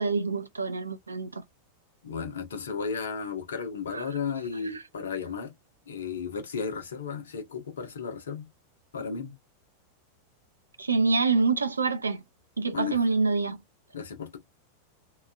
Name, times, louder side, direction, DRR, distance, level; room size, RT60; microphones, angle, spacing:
voice 1, 0.0-1.4 3.9-4.0 10.8-12.2 12.6-13.6, right 4 dB, 80° right, 0.4 m, -26 dB
voice 2, 2.0-5.5 5.9-8.5 8.9-9.3 12.7-13.0 13.9-14.4, left 6 dB, 65° left, 0.9 m, -34 dB
2.9 x 2.3 x 2.4 m
figure-of-eight pair, 90°, 0 cm